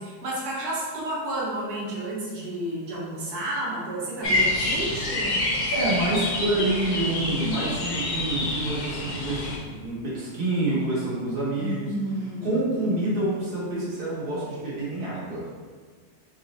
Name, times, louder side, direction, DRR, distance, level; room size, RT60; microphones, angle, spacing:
voice 1, 0.0-5.4 11.6-12.5 12.8-12.9, right 1 dB, 80° right, -6 dB, 1.4 m, -31 dB
sound 1, 4.2-9.6, left 2 dB, 80° left, 0.4 m, -27 dB
voice 2, 5.7-9.5 9.8-11.9 12.4-15.5, right 2 dB, 35° right, -8 dB, 1.3 m, -27 dB
4.0 x 2.4 x 3.9 m, 1.5 s
omnidirectional pair, 1.7 m